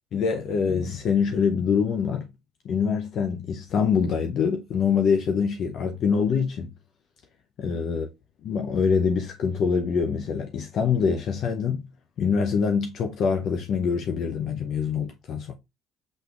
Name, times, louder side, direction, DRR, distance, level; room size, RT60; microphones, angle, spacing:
voice 1, 0.1-2.3 2.6-6.7 7.6-8.1 8.4-11.9 12.2-15.5, left 6 dB, 55° left, 0.6 m, -24 dB
6.2 x 3.3 x 2.4 m
supercardioid pair, 90°, 0 cm